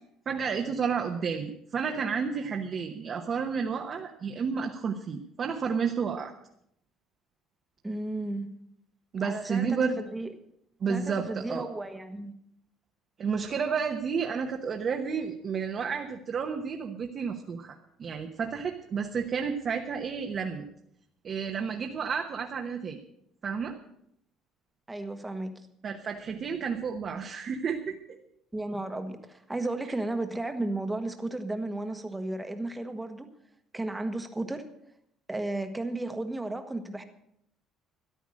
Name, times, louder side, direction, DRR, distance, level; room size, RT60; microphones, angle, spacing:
voice 1, 0.3-6.3 9.1-9.9 10.8-11.7 13.2-20.7 21.2-23.0 23.4-23.7 25.8-28.2, right 6 dB, 35° right, 2 dB, 1.1 m, -31 dB
voice 2, 7.8-8.5 9.2-10.3 10.9-12.3 24.9-25.5 28.5-33.3 33.7-34.6 35.3-37.0, right 2 dB, 10° right, 7 dB, 1.2 m, -34 dB
13.5 x 11.0 x 6.4 m, 0.74 s
cardioid pair, 155°, 0 cm